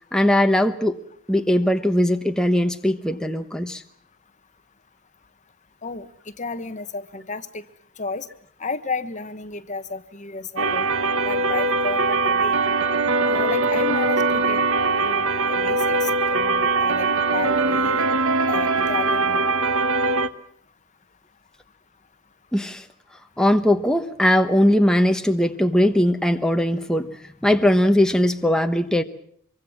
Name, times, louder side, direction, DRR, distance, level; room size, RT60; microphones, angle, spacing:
voice 1, 0.1-1.0 1.3-3.8 22.5-22.8 23.4-27.1 27.4-29.0, left 1 dB, 5° left, 6 dB, 1.1 m, -19 dB
voice 2, 6.4-7.6 8.0-8.3 8.6-10.9 11.2-12.6 13.2-14.6 15.0-18.0 18.5-19.4, left 4 dB, 35° left, 11 dB, 1.3 m, -32 dB
sound 1, 10.6-20.3, right 3 dB, 75° right, 1.3 m, -21 dB
25.0 x 24.0 x 7.3 m, 0.63 s
head